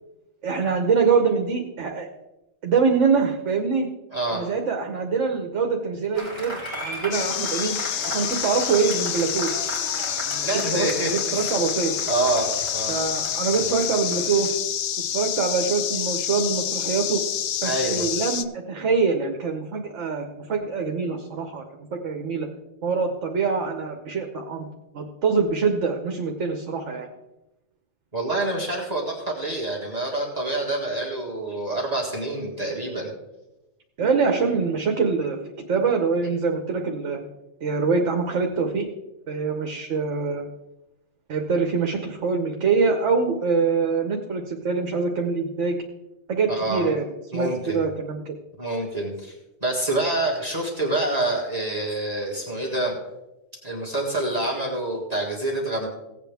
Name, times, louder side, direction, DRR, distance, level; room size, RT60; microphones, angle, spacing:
voice 1, 0.4-2.1 2.6-3.9 4.3-7.7 8.0-9.5 10.3-11.9 12.9-14.5 15.1-17.2 17.6-21.6 22.0-22.5 22.8-24.6 24.9-27.1 34.0-37.2 37.6-38.9 39.3-40.4 41.3-45.8 46.3-48.3, right 5 dB, 70° right, 3 dB, 1.3 m, -24 dB
voice 2, 4.1-4.5 10.4-11.5 12.1-13.0 17.6-18.1 28.1-33.1 46.5-46.9 47.3-47.9 48.6-53.0 53.6-55.9, right 2 dB, 30° right, -3 dB, 1.9 m, -27 dB
Applause, 6.1-14.5, right 1 dB, 20° left, 4.5 m, -36 dB
sound 1, 7.1-18.4, left 10 dB, 65° left, 0.7 m, -28 dB
16.5 x 8.3 x 3.5 m, 0.96 s
omnidirectional pair, 1.3 m